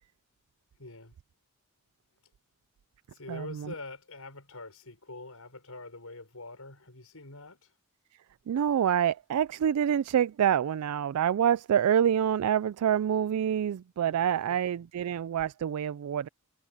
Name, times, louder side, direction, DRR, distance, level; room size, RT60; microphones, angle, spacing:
voice 1, 0.8-1.2 3.1-7.7 14.1-14.6, left 2 dB, 75° left, 6.4 m, -45 dB
voice 2, 3.3-3.7 8.5-16.3, right 9 dB, 85° right, 0.3 m, -27 dB
head